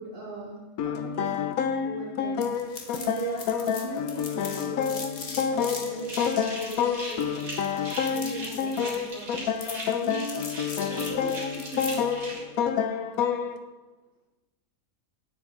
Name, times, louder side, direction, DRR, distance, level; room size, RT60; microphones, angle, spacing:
voice 1, 0.0-1.3 1.8-5.1 5.4-7.3 8.1-10.3 10.9-12.1 12.4-12.5, right 3 dB, 45° right, -7 dB, 1.9 m, -39 dB
sound 1, 0.8-13.6, left 7 dB, 85° left, 1.1 m, -28 dB
sound 2, 2.4-12.1, left 4 dB, 45° left, 1.2 m, -41 dB
sound 3, 6.0-12.4, right 1 dB, 80° right, 2.8 m, -39 dB
9.0 x 7.8 x 3.8 m, 1.2 s
omnidirectional pair, 1.5 m